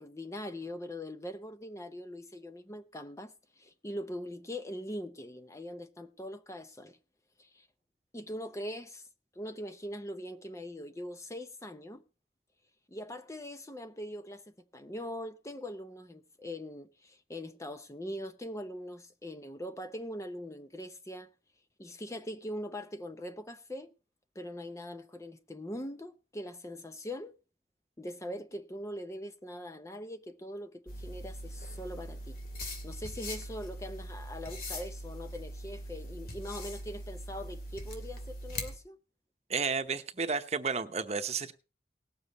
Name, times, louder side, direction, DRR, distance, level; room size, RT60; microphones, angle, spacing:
voice 1, 0.0-7.0 7.4-7.7 8.1-9.1 9.4-12.0 12.9-14.4 14.7-21.3 21.8-23.9 24.4-27.3 28.0-32.4 32.8-39.0, equal, 15° left, 0.6 m, -42 dB
sound 1, 30.9-38.8, equal, 55° left, 2.6 m, -41 dB
voice 2, 39.5-41.5, right 5 dB, 35° right, 0.9 m, -32 dB
19.0 x 7.2 x 4.1 m
head